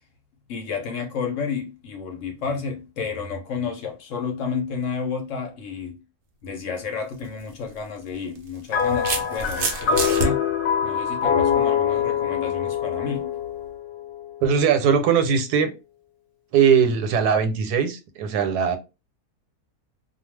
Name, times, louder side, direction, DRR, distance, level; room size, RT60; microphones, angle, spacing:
voice 1, 0.5-6.0 6.4-10.4 10.8-13.3, left 5 dB, 65° left, 0.9 m, -31 dB
sound 1, 7.1-7.3 8.3-10.3, right 4 dB, 60° right, 0.6 m, -27 dB
sound 2, 8.7-14.2, left 7 dB, 80° left, 1.1 m, -24 dB
voice 2, 14.4-15.7 16.5-18.8, right 7 dB, 90° right, 1.2 m, -20 dB
2.3 x 2.3 x 3.1 m
omnidirectional pair, 1.6 m